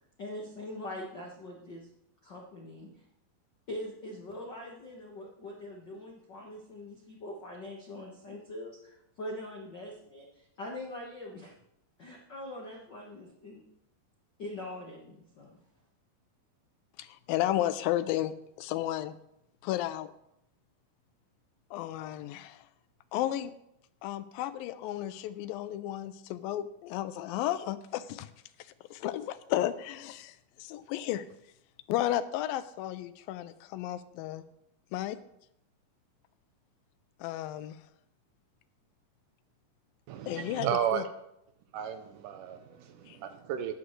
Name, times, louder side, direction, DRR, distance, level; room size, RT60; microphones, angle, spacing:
voice 1, 0.2-1.9 2.2-2.9 3.7-11.5 12.0-13.6 14.4-15.6, left 1 dB, 65° left, -1 dB, 1.0 m, -42 dB
voice 2, 17.3-19.2 19.6-20.1 21.7-22.6 23.1-23.5 24.0-28.3 28.9-30.3 30.6-31.2 31.9-34.4 34.9-35.2 37.2-37.7 40.3-40.7 40.9-41.0, left 13 dB, 85° left, 13 dB, 2.3 m, -33 dB
voice 3, 40.1-41.1 41.7-43.7, right 9 dB, 80° right, 8 dB, 2.0 m, -33 dB
14.0 x 10.5 x 3.2 m, 0.79 s
omnidirectional pair, 4.2 m